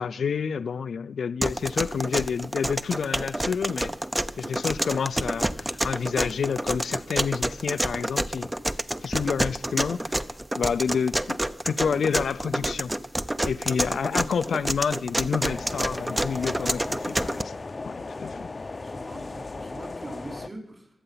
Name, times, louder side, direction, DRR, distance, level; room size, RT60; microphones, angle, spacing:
voice 1, 0.0-3.9 4.4-8.5 9.0-10.2 10.6-12.9 13.5-17.6 17.9-18.5, left 6 dB, 85° left, 0.5 m, -29 dB
sound 1, 1.4-17.4, right 1 dB, 15° right, 0.6 m, -28 dB
sound 2, 15.5-20.5, left 3 dB, 40° left, 0.6 m, -36 dB
voice 2, 18.8-20.9, right 1 dB, 40° right, 4.5 m, -42 dB
24.0 x 8.0 x 5.7 m
cardioid pair, 75°, 0 cm